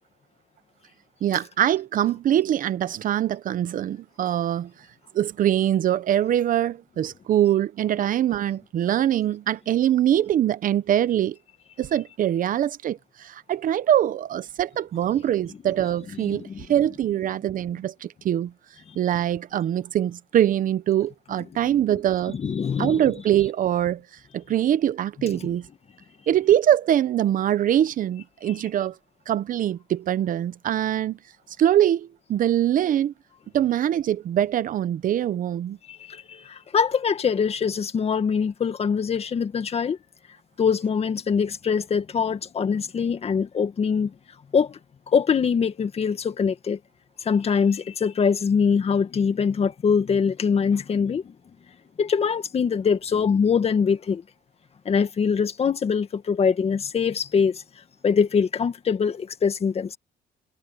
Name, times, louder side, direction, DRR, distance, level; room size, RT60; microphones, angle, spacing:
voice 1, 1.2-4.7 5.1-11.4 11.8-18.5 19.0-22.4 22.8-24.0 24.3-25.7 26.3-28.9 29.3-31.2 31.6-33.1 33.5-35.8, right 11 dB, 55° right, 0.9 m, -23 dB
voice 2, 16.2-16.7 21.7-21.8 22.3-23.0 35.9-40.0 40.6-44.1 44.5-44.8 45.1-46.8 47.3-51.3 52.0-54.2 54.9-57.6 58.0-60.0, left 6 dB, 35° left, 1.9 m, -23 dB
cardioid pair, 110°, 17 cm